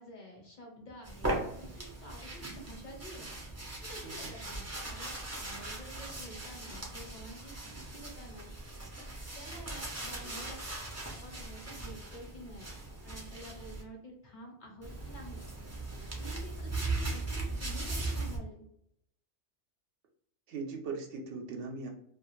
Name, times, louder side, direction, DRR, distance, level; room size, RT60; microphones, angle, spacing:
voice 1, 0.0-3.3 3.8-8.5 9.3-10.6 11.1-15.4 15.9-18.6, right 1 dB, 45° left, 0 dB, 1.0 m, -49 dB
sound 1, 1.0-13.8 14.8-18.4, right 2 dB, 20° right, 0.4 m, -39 dB
voice 2, 20.5-21.9, right 4 dB, 75° right, 2 dB, 0.9 m, -39 dB
2.4 x 2.4 x 3.0 m, 0.73 s
omnidirectional pair, 1.2 m